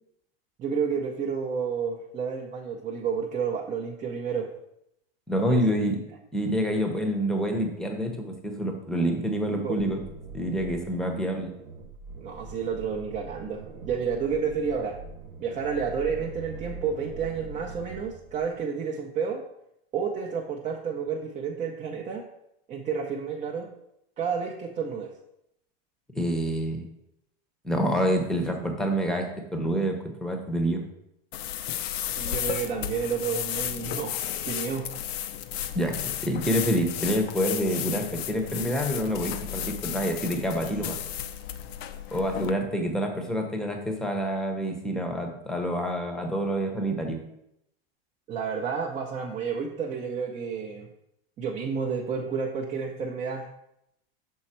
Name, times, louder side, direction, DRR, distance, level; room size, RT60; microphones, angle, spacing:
voice 1, 0.6-4.5 5.5-5.6 9.6-9.8 12.2-15.0 15.4-19.4 19.9-22.2 22.7-23.7 24.2-25.2 32.1-34.9 48.3-50.9 51.4-53.5, right 6 dB, 25° right, -1 dB, 0.6 m, -30 dB
voice 2, 5.3-6.0 6.3-10.0 10.3-11.5 26.2-26.9 27.6-30.8 35.7-41.0 42.1-47.2, equal, ahead, 3 dB, 0.8 m, -27 dB
sound 1, 9.8-18.6, right 3 dB, 65° right, 1.1 m, -43 dB
sound 2, 31.3-42.5, left 11 dB, 80° left, 0.6 m, -33 dB
6.3 x 4.3 x 4.3 m, 0.80 s
supercardioid pair, 130°, 30 cm